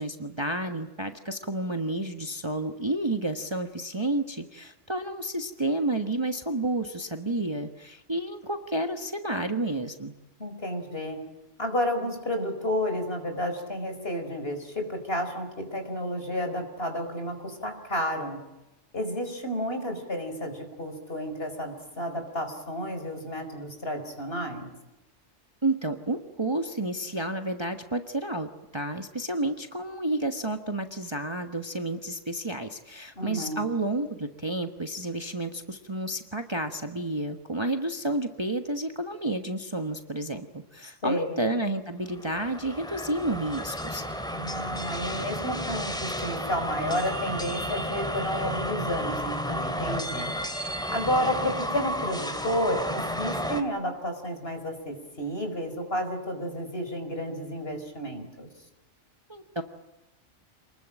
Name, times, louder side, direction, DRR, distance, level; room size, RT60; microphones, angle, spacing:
voice 1, 0.0-10.1 25.6-44.0 59.3-59.6, right 1 dB, 20° right, 6 dB, 1.4 m, -30 dB
voice 2, 10.4-11.2 11.6-18.4 18.9-24.7 33.2-33.7 40.8-41.4 44.3-50.3 50.6-50.7 50.9-58.5, equal, 50° left, 6 dB, 5.0 m, -31 dB
sound 1, 42.1-53.6, equal, 5° left, 2.5 m, -32 dB
28.0 x 21.0 x 9.0 m, 0.98 s
omnidirectional pair, 1.3 m